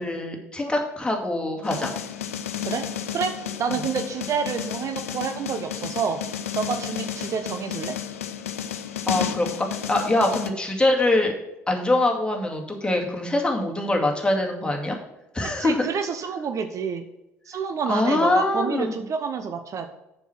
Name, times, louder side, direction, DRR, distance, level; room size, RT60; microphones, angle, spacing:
voice 1, 0.0-1.9 3.7-3.8 9.1-11.3 11.7-15.0 15.3-15.8 17.9-19.0, left 2 dB, 10° left, 1 dB, 2.2 m, -23 dB
sound 1, 1.6-10.5, left 9 dB, 80° left, 0.5 m, -32 dB
voice 2, 3.1-8.0 15.6-17.0 17.5-19.9, right 6 dB, 45° right, 8 dB, 0.7 m, -28 dB
7.1 x 6.1 x 5.8 m, 0.96 s
figure-of-eight pair, 55°, 7 cm